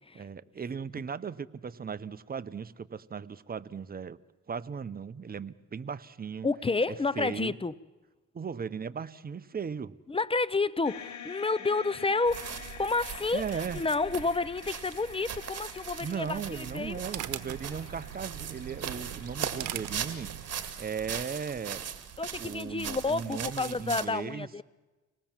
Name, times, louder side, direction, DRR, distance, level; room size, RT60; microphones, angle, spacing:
voice 1, 0.1-4.2 4.5-6.5 7.2-7.5 8.3-9.9 13.3-13.8 16.0-20.3 20.8-21.9 22.4-24.5, right 6 dB, 30° right, 0.8 m, -37 dB
voice 2, 6.4-7.8 10.1-17.0 22.2-24.6, left 3 dB, 20° left, 0.6 m, -30 dB
sound 1, 10.8-21.1, left 7 dB, 65° left, 3.5 m, -48 dB
sound 2, 12.3-24.1, right 8 dB, 55° right, 2.1 m, -40 dB
sound 3, 16.3-20.8, right 12 dB, 80° right, 1.1 m, -41 dB
25.0 x 18.5 x 7.3 m
cardioid pair, 90°, 30 cm